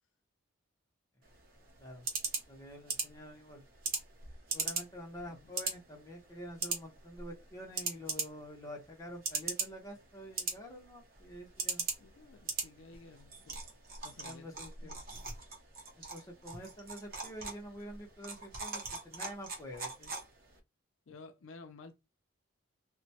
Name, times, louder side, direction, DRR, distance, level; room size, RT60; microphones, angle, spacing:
sound 1, 1.2-20.6, right 4 dB, 45° right, 0.7 m, -41 dB
voice 1, 2.5-3.6 4.5-11.8 14.2-15.0 16.0-20.1, equal, 15° left, 0.8 m, -47 dB
voice 2, 12.0-13.6 14.0-14.9 21.1-22.0, left 3 dB, 70° left, 0.4 m, -53 dB
2.9 x 2.1 x 2.7 m
head